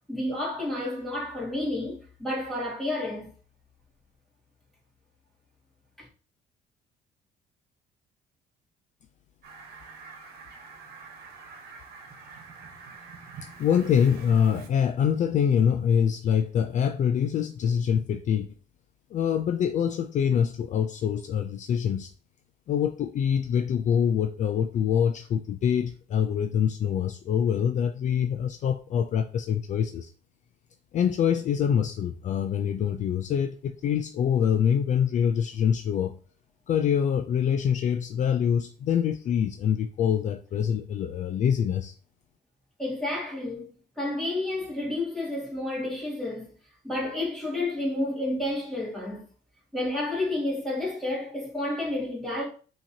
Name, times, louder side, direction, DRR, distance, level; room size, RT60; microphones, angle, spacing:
voice 1, 0.1-3.3 42.8-43.7 44.0-46.5 46.8-49.2 49.7-52.4, left 1 dB, ahead, 2.0 m, -30 dB
Fowl, 9.4-14.7, right 5 dB, 65° right, 1.2 m, -45 dB
voice 2, 13.6-18.5 19.1-22.1 22.7-30.1 30.9-36.1 36.7-41.9, left 8 dB, 45° left, 0.4 m, -25 dB
5.7 x 2.9 x 2.8 m
cardioid pair, 110°, 17 cm